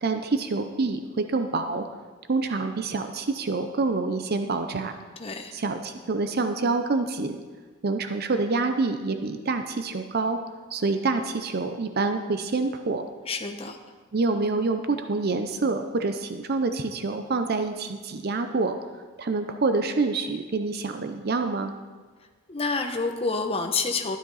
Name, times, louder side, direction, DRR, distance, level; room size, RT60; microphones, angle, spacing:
voice 1, 0.0-1.8 2.3-4.9 5.5-7.4 7.8-10.4 10.7-13.0 14.1-18.8 19.2-21.7, right 3 dB, 50° right, 7 dB, 0.6 m, -27 dB
voice 2, 5.2-5.5 13.3-13.8 22.5-24.2, left 4 dB, 30° left, 5 dB, 0.9 m, -28 dB
12.5 x 11.0 x 4.1 m, 1.4 s
head